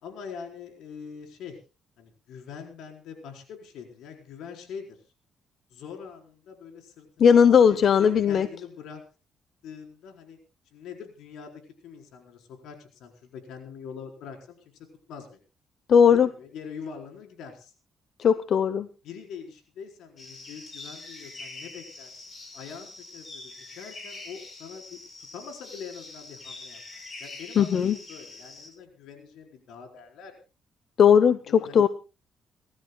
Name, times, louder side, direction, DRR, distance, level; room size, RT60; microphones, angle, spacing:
voice 1, 0.0-1.6 2.0-5.0 5.7-9.0 9.6-10.4 10.7-15.4 16.0-17.7 19.0-22.2 22.5-30.4 31.5-31.9, left 6 dB, 85° left, 3 dB, 4.3 m, -43 dB
voice 2, 7.2-8.5 15.9-16.3 18.2-18.9 27.6-28.0 31.0-31.9, left 7 dB, 60° left, 13 dB, 0.8 m, -18 dB
sound 1, 20.2-28.7, left 3 dB, 40° left, 7.2 m, -44 dB
30.0 x 13.0 x 2.3 m, 0.32 s
cardioid pair, 90°, 0 cm